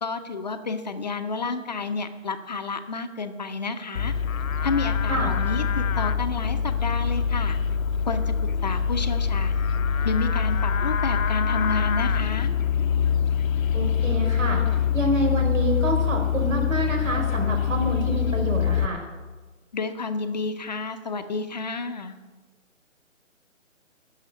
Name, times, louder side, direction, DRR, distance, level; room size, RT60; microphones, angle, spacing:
voice 1, 0.0-4.1 4.6-7.6 8.1-9.5 10.0-12.5 19.7-22.1, left 4 dB, 35° left, 8 dB, 0.6 m, -30 dB
Livestock farm animals working animals, 3.9-18.9, left 7 dB, 90° left, 0.7 m, -24 dB
voice 2, 13.7-19.0, right 2 dB, 80° right, 2 dB, 4.6 m, -28 dB
11.5 x 6.4 x 8.8 m, 1.3 s
hypercardioid pair, 155°, 39 cm